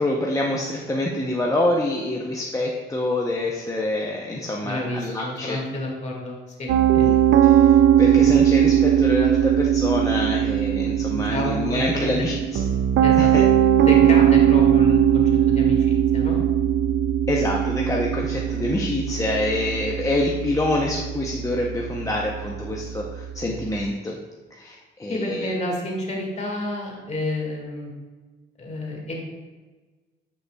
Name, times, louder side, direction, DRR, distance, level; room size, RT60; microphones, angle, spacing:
voice 1, 0.0-5.6 7.0-7.2 7.4-12.6 13.2-13.4 17.3-24.2 24.5-25.5, left 1 dB, 15° left, -2 dB, 0.7 m, -26 dB
voice 2, 4.6-7.0 8.0-8.4 11.1-12.3 13.0-13.3 13.8-16.4 25.1-27.9 28.6-29.1, left 1 dB, 35° left, -1 dB, 1.9 m, -30 dB
Piano, 6.7-23.8, right 10 dB, 70° right, 0.5 m, -20 dB
9.3 x 5.5 x 2.3 m, 1.3 s
cardioid pair, 90°, 20 cm